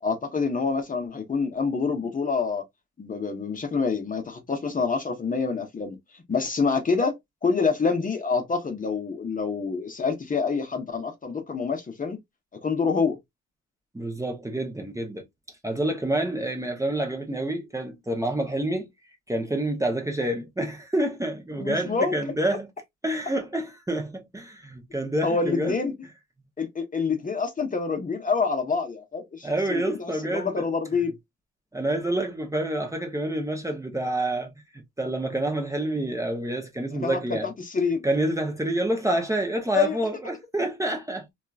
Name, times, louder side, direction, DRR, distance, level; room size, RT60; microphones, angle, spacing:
voice 1, 0.0-2.6 3.0-12.2 12.6-13.2 21.6-22.2 25.2-25.9 26.6-31.2 37.0-38.0 39.7-40.0, left 5 dB, 25° left, 0.8 m, -27 dB
voice 2, 13.9-15.2 15.6-18.9 19.3-22.7 23.0-25.8 29.4-30.7 31.7-37.5 38.0-41.3, right 1 dB, 10° right, 0.7 m, -28 dB
2.8 x 2.4 x 2.3 m
cardioid pair, 90°, 30 cm